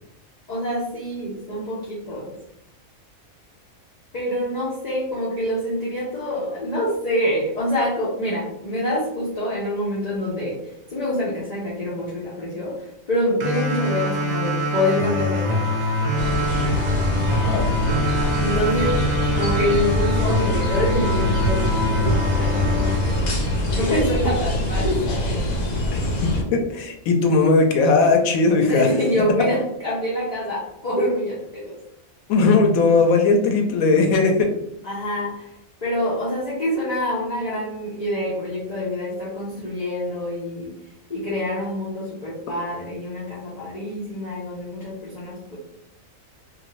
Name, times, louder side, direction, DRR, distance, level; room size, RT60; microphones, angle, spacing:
voice 1, 0.5-2.4 4.1-10.6 10.9-12.7 13.1-15.7 18.4-19.1 19.3-23.4 23.7-25.4 28.7-31.7 34.8-35.5 35.8-40.7 41.1-45.6, left 1 dB, 40° left, -7 dB, 0.7 m, -26 dB
sound 1, 13.4-24.4, left 1 dB, 60° right, 0.4 m, -24 dB
sound 2, 16.2-26.4, left 1 dB, 65° left, 1.0 m, -24 dB
voice 2, 17.3-17.7 25.9-28.9 29.4-29.5 32.3-34.5, left 3 dB, 90° left, 3 dB, 1.0 m, -18 dB
2.6 x 2.6 x 3.0 m, 0.77 s
omnidirectional pair, 1.4 m